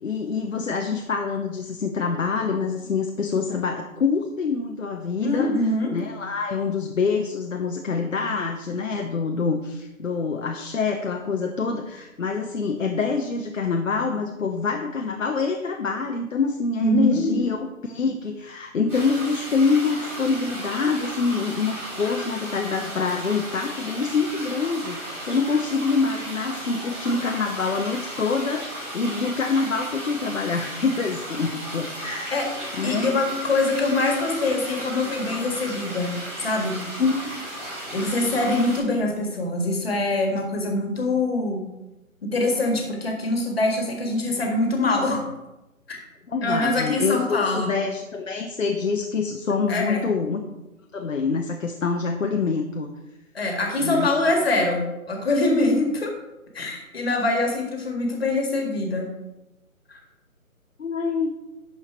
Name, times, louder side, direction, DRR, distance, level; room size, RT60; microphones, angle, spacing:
voice 1, 0.0-5.5 5.9-32.5 32.7-33.1 37.0-37.4 46.3-50.5 50.9-52.9 53.8-54.1 60.8-61.4, left 4 dB, 65° left, 4 dB, 0.8 m, -26 dB
voice 2, 5.2-5.9 16.8-17.4 32.3-32.5 32.8-36.8 37.9-41.6 42.2-45.2 45.9-46.0 46.4-47.7 49.7-50.1 53.3-56.1 56.5-59.1 59.9-60.0, left 2 dB, 45° left, 2 dB, 1.8 m, -24 dB
sound 1, 18.9-38.8, right 1 dB, 5° right, 2.5 m, -35 dB
11.0 x 4.8 x 4.4 m, 0.99 s
hypercardioid pair, 175°, 43 cm